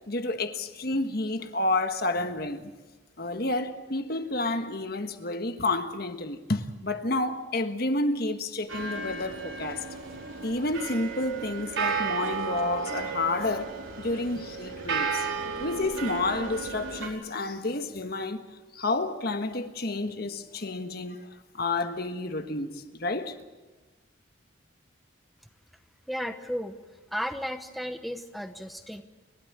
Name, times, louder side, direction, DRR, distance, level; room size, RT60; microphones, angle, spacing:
voice 1, 0.1-2.7 3.2-9.8 10.4-18.4 18.7-21.3 21.5-23.4, left 2 dB, 50° left, 1.5 m, -30 dB
sound 1, 8.7-17.1, right 5 dB, 85° right, 4.7 m, -33 dB
voice 2, 26.1-26.8 27.1-29.0, equal, ahead, 0.9 m, -34 dB
30.0 x 13.0 x 8.8 m
head